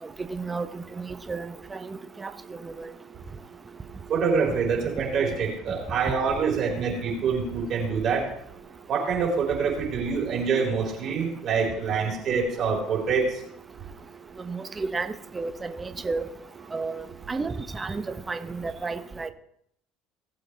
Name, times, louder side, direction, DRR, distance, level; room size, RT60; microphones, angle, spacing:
voice 1, 0.3-0.7 1.0-2.9 14.5-16.3 16.7-19.3, right 4 dB, 20° right, 8 dB, 0.9 m, -32 dB
voice 2, 4.1-8.2 8.9-13.2, right 5 dB, 50° right, -1 dB, 4.4 m, -25 dB
19.5 x 7.8 x 3.4 m, 0.69 s
supercardioid pair, 80°, 0 cm